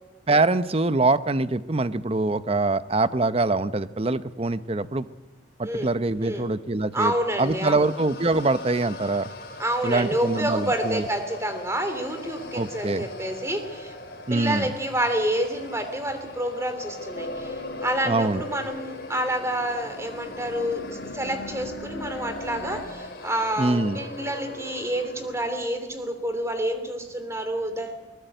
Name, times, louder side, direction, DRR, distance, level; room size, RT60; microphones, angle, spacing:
voice 1, 0.3-5.1 5.6-7.1 7.4-9.3 9.8-11.1 12.5-13.1 14.3-14.7 18.1-18.4 23.6-24.0, right 2 dB, 35° right, 13 dB, 0.7 m, -24 dB
voice 2, 6.9-7.9 9.6-13.9 14.3-28.0, right 1 dB, 15° right, 7 dB, 3.0 m, -28 dB
sound 1, 7.4-25.6, left 2 dB, 55° left, 4.0 m, -40 dB
sound 2, 17.1-22.8, left 2 dB, 80° left, 2.6 m, -39 dB
22.5 x 20.0 x 7.9 m, 1.2 s
head